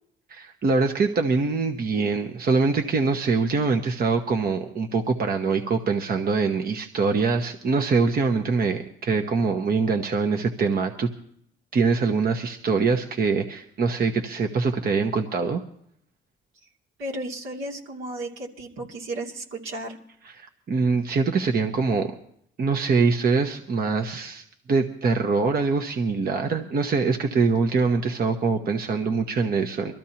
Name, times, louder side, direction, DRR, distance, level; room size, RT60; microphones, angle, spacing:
voice 1, 0.3-11.1 11.7-15.6 20.2-22.1 22.6-29.9, right 4 dB, 50° right, 5 dB, 1.1 m, -24 dB
voice 2, 17.0-20.0, right 1 dB, 85° right, -2 dB, 2.9 m, -34 dB
23.0 x 14.0 x 2.9 m, 0.67 s
cardioid pair, 90°, 20 cm